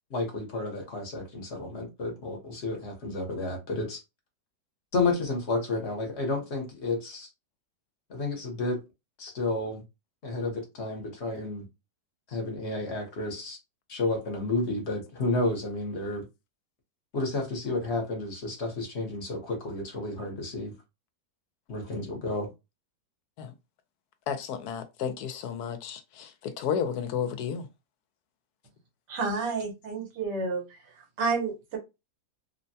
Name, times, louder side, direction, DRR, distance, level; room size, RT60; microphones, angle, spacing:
voice 1, 0.1-4.0 4.9-7.3 8.1-8.8 9.2-9.8 10.2-11.7 12.3-13.6 13.9-16.3 17.1-20.7 21.7-22.5, left 2 dB, 50° left, 1.0 m, -31 dB
voice 2, 24.3-27.7, left 7 dB, 75° left, 1.1 m, -32 dB
voice 3, 29.1-30.8 31.2-31.8, right 4 dB, 85° right, 1.5 m, -30 dB
3.3 x 2.1 x 2.6 m
omnidirectional pair, 1.8 m